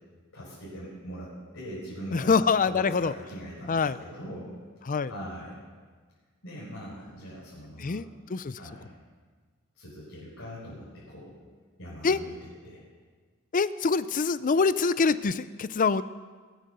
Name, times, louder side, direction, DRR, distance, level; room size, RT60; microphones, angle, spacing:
voice 1, 0.3-5.6 6.4-8.0 8.5-8.9 9.7-11.4 11.8-12.4 12.6-12.8, equal, 60° left, -7 dB, 5.2 m, -41 dB
voice 2, 2.1-3.1 3.7-4.0 4.9-5.1 7.8-8.6 12.0-12.2 13.5-16.0, left 4 dB, 35° left, 15 dB, 0.5 m, -25 dB
21.0 x 9.2 x 6.8 m, 1.5 s
head